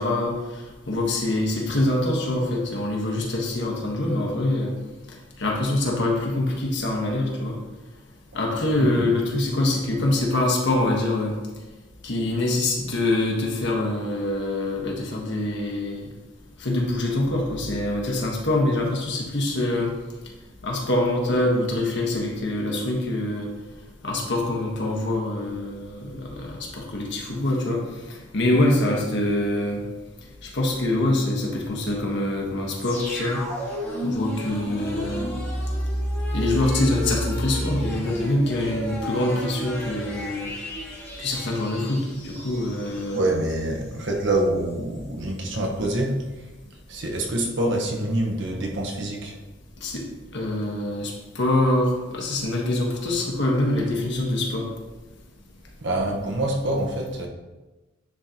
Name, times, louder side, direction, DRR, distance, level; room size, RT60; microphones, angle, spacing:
voice 1, 0.0-4.7 5.4-7.6 8.3-11.4 12.0-16.1 16.6-19.9 20.6-23.5 24.0-27.8 28.1-29.8 30.4-33.4 34.0-35.3 36.3-40.5 41.2-43.2 49.8-50.0 50.3-54.7 55.9-56.0, left 1 dB, 65° left, -1 dB, 1.3 m, -25 dB
sound 1, 32.8-43.6 43.9-44.0, equal, 10° left, 2.1 m, -31 dB
voice 2, 43.1-46.2 46.9-49.4 55.8-57.3, right 1 dB, 65° right, 1 dB, 1.0 m, -26 dB
9.8 x 3.8 x 2.9 m, 1.1 s
head